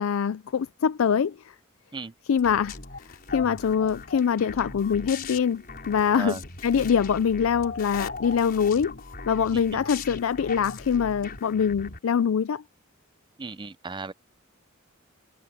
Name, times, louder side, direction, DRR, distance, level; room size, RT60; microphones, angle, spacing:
voice 1, 0.0-1.4 2.3-2.8 3.3-9.0 9.3-12.6, left 7 dB, 75° left, 0.4 m, -24 dB
sound 1, 2.4-12.0, left 4 dB, 45° left, 4.9 m, -39 dB
voice 2, 9.5-9.8 13.4-14.1, right 4 dB, 25° right, 0.6 m, -36 dB
head